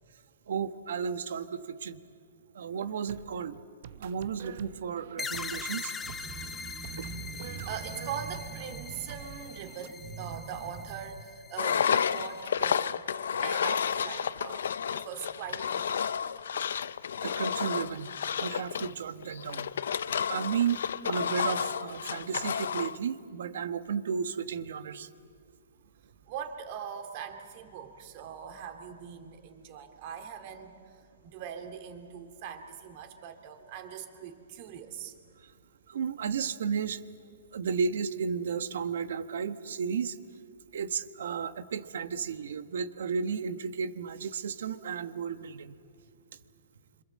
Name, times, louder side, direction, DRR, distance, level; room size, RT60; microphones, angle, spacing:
voice 1, 0.5-2.0 2.5-3.6 4.0-5.9 17.2-19.7 20.3-25.1 35.4-35.5 35.9-37.0 37.5-40.2 40.7-45.8, right 6 dB, 70° right, 11 dB, 1.3 m, -33 dB
sound 1, 2.8-9.9, right 9 dB, 55° right, 0.8 m, -48 dB
sound 2, 5.2-12.4, left 5 dB, 10° left, 0.9 m, -42 dB
voice 2, 6.0-13.1 13.4-16.1 26.3-35.1, right 7 dB, 40° right, 5 dB, 2.6 m, -41 dB
Engine, 11.6-23.0, left 7 dB, 75° left, 0.7 m, -31 dB
27.0 x 26.0 x 7.6 m, 2.3 s
hypercardioid pair, 160°, 0 cm